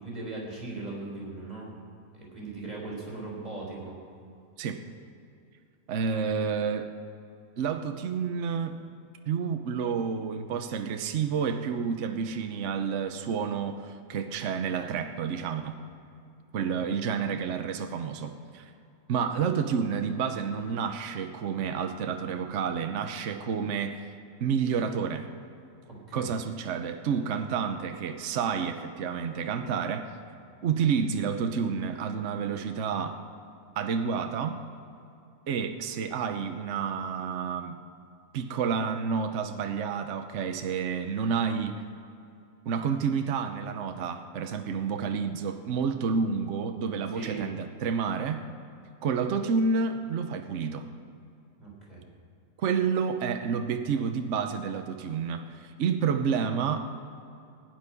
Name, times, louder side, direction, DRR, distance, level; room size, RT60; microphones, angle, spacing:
voice 1, 0.0-1.7 2.1-4.0 16.6-17.0 25.8-26.3 47.1-47.4 51.6-52.0, right 3 dB, 30° right, -4 dB, 4.1 m, -39 dB
voice 2, 5.9-6.9 7.6-8.8 9.3-15.8 16.5-18.7 19.1-24.1 24.4-25.2 26.1-30.1 30.6-33.2 33.8-34.6 35.5-37.8 38.3-41.8 42.7-48.4 49.0-50.9 52.6-56.8, right 6 dB, 60° right, 7 dB, 1.0 m, -29 dB
17.0 x 6.1 x 9.7 m, 2.6 s
omnidirectional pair, 1.5 m